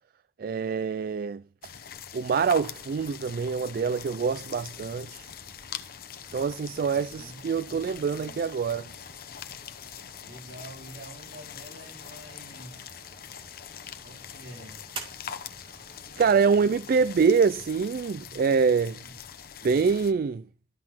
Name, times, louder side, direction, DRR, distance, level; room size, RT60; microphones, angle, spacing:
voice 1, 0.4-1.4 2.1-5.3 6.3-8.9 16.2-19.0 19.6-20.4, right 5 dB, 55° right, 0.3 m, -25 dB
sound 1, 1.6-20.1, left 8 dB, 60° left, 0.9 m, -43 dB
sound 2, 2.6-16.7, right 3 dB, 30° right, 2.1 m, -51 dB
voice 2, 6.9-8.4 10.2-13.0 14.0-14.9 16.1-16.6 18.2-18.6 18.9-19.1, right 1 dB, 75° right, 5.0 m, -48 dB
12.5 x 5.9 x 4.3 m
head